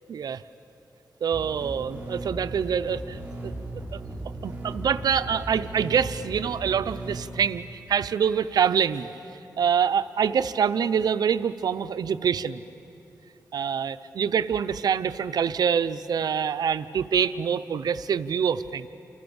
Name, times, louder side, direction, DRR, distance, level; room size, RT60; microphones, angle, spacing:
voice 1, 0.1-0.4 1.2-3.5 3.9-4.0 4.4-9.1 9.6-12.6 13.5-18.9, right 7 dB, 80° right, 13 dB, 0.7 m, -25 dB
sound 1, 1.3-7.2, right 1 dB, 20° right, 7.6 m, -37 dB
29.5 x 27.5 x 7.2 m, 2.9 s
wide cardioid pair, 90°, 7 cm